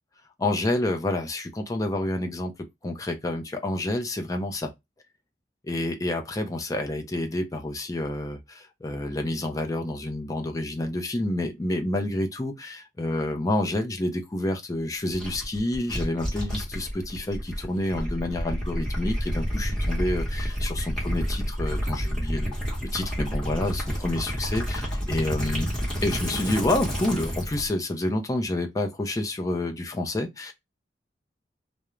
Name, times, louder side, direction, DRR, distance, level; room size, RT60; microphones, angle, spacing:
voice 1, 0.4-2.5 2.8-4.7 5.6-25.7 26.0-30.5, left 1 dB, 20° left, 0.4 m, -29 dB
Gurgling / Liquid, 15.1-27.7, equal, 5° left, 1.0 m, -29 dB
2.3 x 2.1 x 3.0 m
head